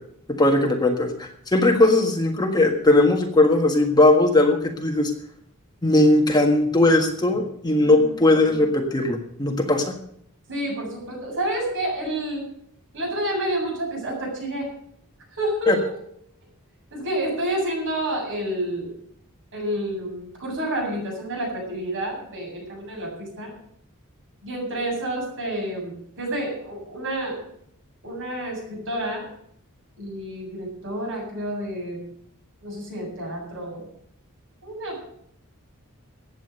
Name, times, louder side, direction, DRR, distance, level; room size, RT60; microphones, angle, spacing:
voice 1, 0.3-5.1 5.8-9.9 15.7-15.8, left 2 dB, 20° left, 3 dB, 1.6 m, -19 dB
voice 2, 7.8-8.1 10.5-12.5 12.9-14.7 15.3-15.9 16.9-18.9 19.5-23.5 24.4-27.4 28.0-29.3 30.0-32.1 32.6-33.9 34.6-35.0, right 1 dB, 60° right, -1 dB, 7.8 m, -29 dB
15.0 x 9.5 x 6.6 m, 0.68 s
head